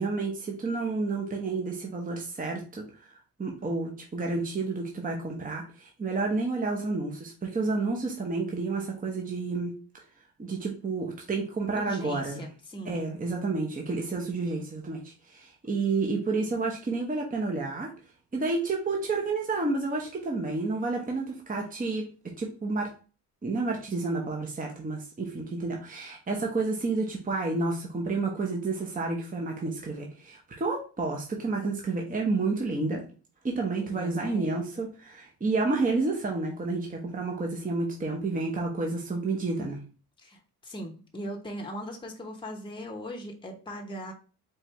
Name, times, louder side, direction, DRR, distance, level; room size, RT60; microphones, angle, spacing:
voice 1, 0.0-2.8 3.4-9.7 10.4-12.4 12.9-17.9 18.3-22.9 23.4-33.0 33.4-39.8, right 3 dB, 20° right, 0 dB, 0.9 m, -30 dB
voice 2, 11.8-13.1 33.8-34.7 40.2-44.1, equal, 10° left, 2 dB, 0.9 m, -39 dB
4.5 x 2.6 x 3.2 m, 0.36 s
cardioid pair, 85°, 40 cm